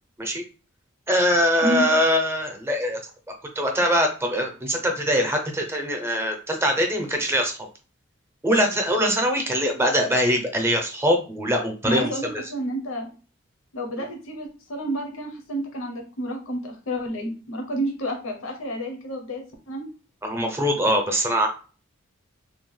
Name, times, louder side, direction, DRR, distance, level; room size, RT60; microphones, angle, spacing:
voice 1, 1.1-3.0 3.6-7.6 8.4-12.1 20.2-21.5, equal, 10° right, 2 dB, 0.5 m, -22 dB
voice 2, 11.8-13.1 13.7-19.9, equal, 90° left, 3 dB, 0.6 m, -30 dB
2.8 x 2.2 x 3.1 m, 0.36 s
head